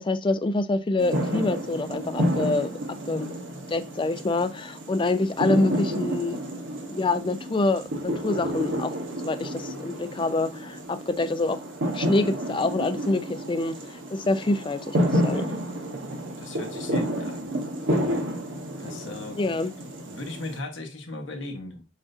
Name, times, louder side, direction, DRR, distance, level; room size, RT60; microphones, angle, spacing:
voice 1, 0.0-2.7 3.1-3.3 3.7-6.4 6.9-8.9 9.2-11.6 11.9-15.5 19.4-19.7, left 2 dB, 25° left, 0.4 m, -26 dB
sound 1, 1.0-20.6, equal, 90° right, 1.0 m, -30 dB
voice 2, 16.4-17.5 18.8-21.8, left 2 dB, 80° left, 1.1 m, -38 dB
7.1 x 2.5 x 2.6 m
head